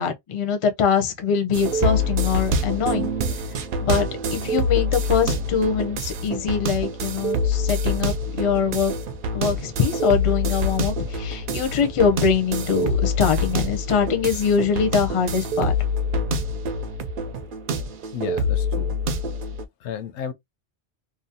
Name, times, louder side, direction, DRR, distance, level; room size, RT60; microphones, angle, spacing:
voice 1, 0.0-3.1 3.8-4.1 4.3-8.9 9.3-15.7, left 6 dB, 40° left, 0.4 m, -23 dB
sound 1, 1.5-19.7, left 1 dB, 60° right, 0.6 m, -25 dB
voice 2, 18.1-19.2 19.8-20.3, left 8 dB, 85° left, 0.9 m, -33 dB
2.6 x 2.0 x 2.6 m
omnidirectional pair, 1.1 m